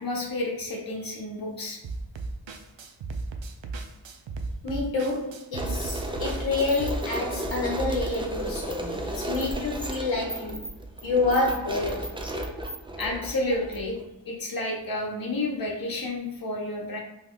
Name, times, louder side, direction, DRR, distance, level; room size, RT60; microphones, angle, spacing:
voice 1, 0.0-1.8 13.0-14.0 14.3-17.0, left 2 dB, 50° left, -1 dB, 1.0 m, -30 dB
sound 1, 1.8-6.9, right 3 dB, 75° right, 0.5 m, -36 dB
voice 2, 4.6-10.7 11.0-12.1, left 3 dB, 75° left, -3 dB, 0.9 m, -28 dB
sound 2, 5.5-14.0, right 1 dB, 10° right, 0.4 m, -33 dB
3.2 x 2.2 x 3.6 m, 0.89 s
cardioid pair, 45°, 46 cm